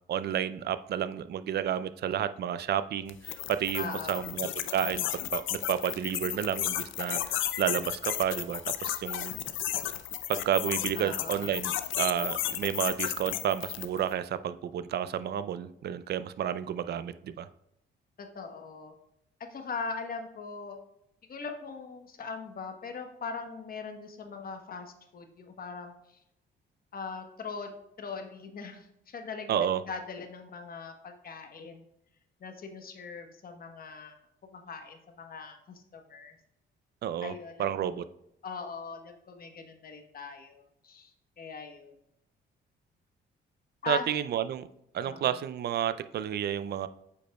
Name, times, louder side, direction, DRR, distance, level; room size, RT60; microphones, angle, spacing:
voice 1, 0.1-9.3 10.3-17.5 29.5-29.8 37.0-37.3 37.6-38.0 43.9-44.7 44.9-46.9, right 10 dB, 55° right, 13 dB, 0.4 m, -31 dB
sound 1, 3.1-14.0, left 12 dB, 80° left, 0.5 m, -33 dB
voice 2, 3.8-4.4 11.0-11.6 18.2-18.9 19.4-20.8 21.3-26.2 26.9-31.8 32.4-34.2 34.4-36.4 37.2-37.9 38.4-41.9 43.8-44.0 45.0-45.3, left 5 dB, 50° left, 5 dB, 1.1 m, -41 dB
8.4 x 5.2 x 2.3 m, 0.80 s
cardioid pair, 90°, 20 cm